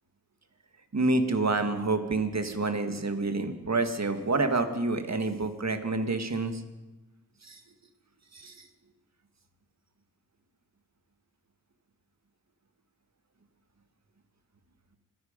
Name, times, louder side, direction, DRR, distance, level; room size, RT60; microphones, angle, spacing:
voice 1, 0.9-6.6 7.4-7.6 8.3-8.7, right 3 dB, 50° right, 7 dB, 1.9 m, -28 dB
26.5 x 9.6 x 5.2 m, 1.0 s
cardioid pair, 50°, 34 cm